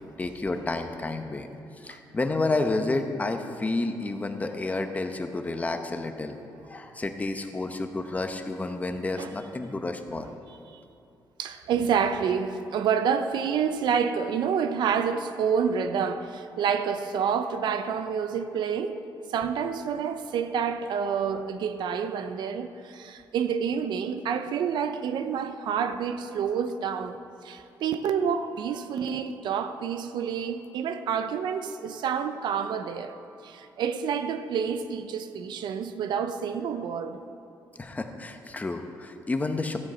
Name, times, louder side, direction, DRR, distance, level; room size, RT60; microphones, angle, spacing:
voice 1, 0.2-1.5 1.7-6.4 6.7-10.3 37.7-39.8, left 2 dB, 20° left, 0.8 m, -30 dB
voice 2, 11.4-19.0 19.3-33.1 33.4-37.2, right 7 dB, 80° right, 0.6 m, -28 dB
14.0 x 9.0 x 4.3 m
cardioid pair, 110°, 8 cm